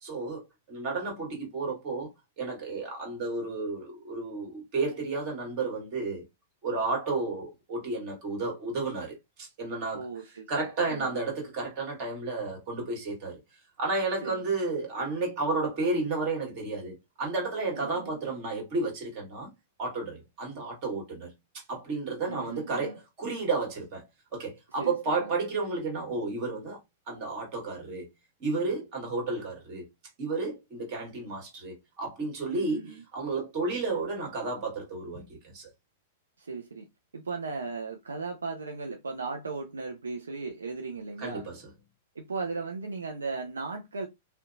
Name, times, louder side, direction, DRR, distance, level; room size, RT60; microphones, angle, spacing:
voice 1, 0.0-2.1 2.4-6.2 6.6-10.1 10.5-13.4 13.8-19.5 19.8-21.3 21.7-24.0 24.3-26.8 27.1-28.0 28.4-29.9 30.2-35.7 41.2-41.6, right 3 dB, 45° right, 1.5 m, -32 dB
voice 2, 9.9-10.5 10.8-11.2 14.2-14.5 17.8-18.2 22.3-23.0 24.8-25.3 32.5-33.0 36.4-36.9 37.1-41.5 42.2-44.1, right 4 dB, 85° right, 0.4 m, -37 dB
2.6 x 2.1 x 2.6 m
hypercardioid pair, 105°, 0 cm